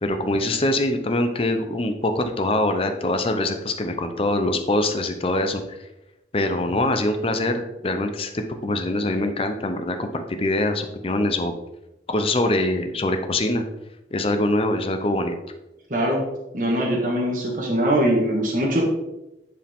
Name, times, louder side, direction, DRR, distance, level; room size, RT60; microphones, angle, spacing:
voice 1, 0.0-5.8 6.3-11.5 12.1-13.6 14.1-15.4, left 1 dB, 30° left, 7 dB, 0.6 m, -23 dB
voice 2, 15.9-16.2 16.5-18.8, right 1 dB, 50° right, -2 dB, 1.4 m, -22 dB
10.5 x 4.8 x 3.6 m, 0.95 s
head